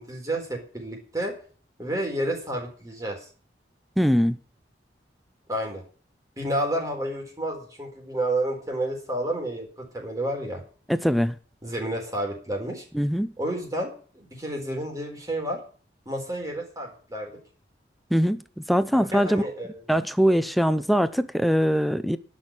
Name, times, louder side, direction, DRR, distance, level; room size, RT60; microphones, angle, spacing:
voice 1, 0.0-1.3 1.8-3.3 5.5-5.8 6.4-10.6 11.6-12.8 13.4-15.6 16.1-17.4 18.9-19.8, right 1 dB, 20° right, 4.2 m, -30 dB
voice 2, 4.0-4.4 10.9-11.4 12.9-13.3 18.1-19.4 19.9-22.2, equal, ahead, 0.6 m, -22 dB
11.5 x 6.4 x 8.8 m
head